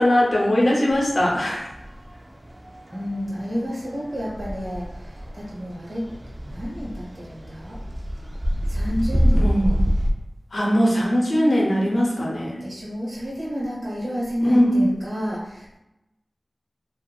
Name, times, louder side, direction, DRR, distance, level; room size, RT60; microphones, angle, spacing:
voice 1, 0.0-1.7 9.3-9.8 10.5-12.6 14.4-14.8, equal, 75° left, -3 dB, 0.7 m, -20 dB
sound 1, 0.9-10.1, equal, 35° right, 0.3 m, -27 dB
voice 2, 2.9-6.1 6.5-7.8 8.7-9.6 12.6-15.8, equal, 75° right, -6 dB, 1.1 m, -30 dB
2.6 x 2.4 x 2.3 m, 0.92 s
wide cardioid pair, 70°, 0 cm